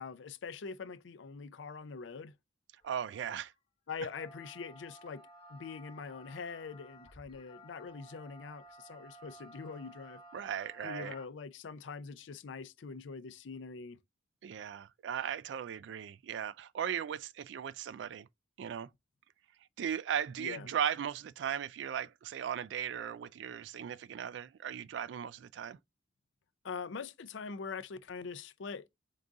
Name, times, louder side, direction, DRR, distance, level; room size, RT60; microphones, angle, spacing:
voice 1, 0.0-2.4 3.9-10.2 10.8-14.0 20.4-20.7 26.6-28.9, left 5 dB, 80° left, 0.5 m, -43 dB
sound 1, 2.8-2.9 3.9-11.3, right 1 dB, 30° left, 0.9 m, -55 dB
voice 2, 2.8-3.5 10.3-11.2 14.4-18.3 18.6-18.9 19.8-25.8, right 8 dB, 70° right, 0.3 m, -37 dB
3.9 x 3.8 x 3.6 m
head